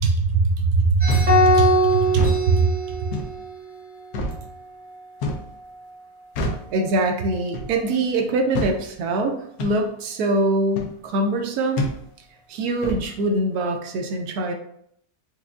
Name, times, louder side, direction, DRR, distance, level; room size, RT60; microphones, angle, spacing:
voice 1, 0.0-1.7 2.0-2.7 6.7-11.9 12.5-14.5, right 3 dB, 80° right, 4 dB, 1.1 m, -22 dB
sound 1, 1.0-9.4, right 1 dB, 15° right, 1.4 m, -41 dB
sound 2, 1.1-1.4 2.1-2.4 3.1-3.3 4.1-4.4 5.2-5.5 6.4-6.7 7.5-7.8 8.5-8.8 9.6-9.8 10.8-10.9 11.8-12.0 12.8-13.1, left 1 dB, 75° left, 1.0 m, -27 dB
sound 3, 1.3-3.6, equal, 40° right, 0.5 m, -20 dB
4.6 x 2.4 x 2.4 m, 0.69 s
omnidirectional pair, 1.7 m